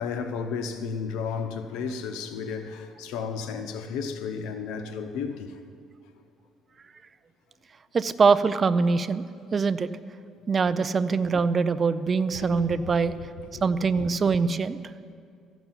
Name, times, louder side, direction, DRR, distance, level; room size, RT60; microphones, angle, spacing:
voice 1, 0.0-5.6 12.3-13.0 13.5-13.7 13.9-14.0, left 5 dB, 90° left, 0.9 m, -33 dB
voice 2, 7.9-9.2 9.5-9.9 10.5-13.1 13.6-14.8, right 5 dB, 35° right, 0.5 m, -23 dB
14.5 x 6.1 x 9.0 m
cardioid pair, 110°, 0 cm